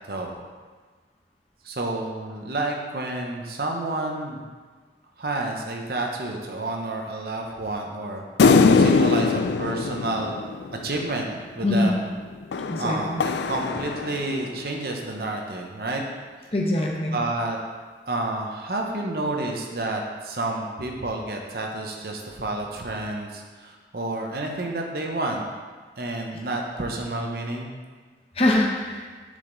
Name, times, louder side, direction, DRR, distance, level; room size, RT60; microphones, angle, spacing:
voice 1, 0.1-0.4 1.6-4.4 5.2-8.2 8.8-10.4 10.8-11.3 11.6-12.0 12.8-16.0 16.4-16.5 17.1-17.6 18.1-25.5 26.0-27.7, right 2 dB, 60° right, 1 dB, 0.9 m, -30 dB
sound 1, 8.4-11.1 12.5-14.6, left 4 dB, 80° left, 0.4 m, -21 dB
voice 2, 12.7-13.2 16.5-17.2 28.3-29.1, left 1 dB, 35° left, -1 dB, 0.9 m, -23 dB
6.9 x 5.1 x 3.9 m, 1.4 s
head